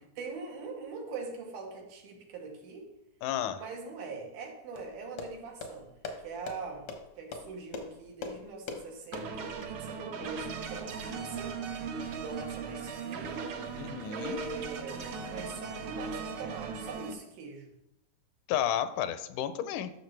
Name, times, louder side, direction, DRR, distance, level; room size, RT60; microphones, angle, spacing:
voice 1, 0.2-2.9 3.5-5.9 6.2-6.9 7.2-11.6 12.2-13.5 14.1-17.7, right 4 dB, 85° right, 1 dB, 3.0 m, -42 dB
voice 2, 3.2-3.6 13.8-14.4 18.5-19.9, left 10 dB, 85° left, 11 dB, 2.0 m, -32 dB
sound 1, 4.8-9.7, left 4 dB, 65° left, 1.2 m, -43 dB
sound 2, 9.1-17.1, right 5 dB, 65° right, 1.5 m, -38 dB
12.5 x 6.5 x 3.3 m, 0.87 s
omnidirectional pair, 3.5 m